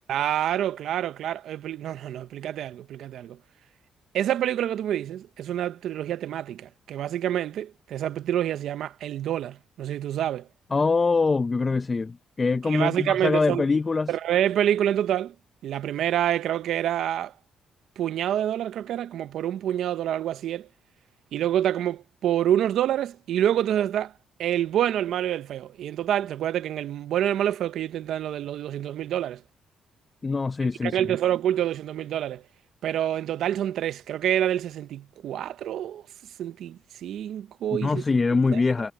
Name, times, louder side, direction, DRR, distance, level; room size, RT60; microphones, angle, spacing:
voice 1, 0.1-3.4 4.1-10.5 12.7-13.6 14.1-15.3 15.6-17.3 18.0-20.7 21.3-24.1 24.4-29.4 30.8-32.4 32.8-36.0 36.4-38.0 38.5-38.6, right 11 dB, 75° right, 0.8 m, -27 dB
voice 2, 10.7-14.1 30.2-31.0 37.8-38.9, left 4 dB, 30° left, 0.7 m, -23 dB
cardioid pair, 90°, 0 cm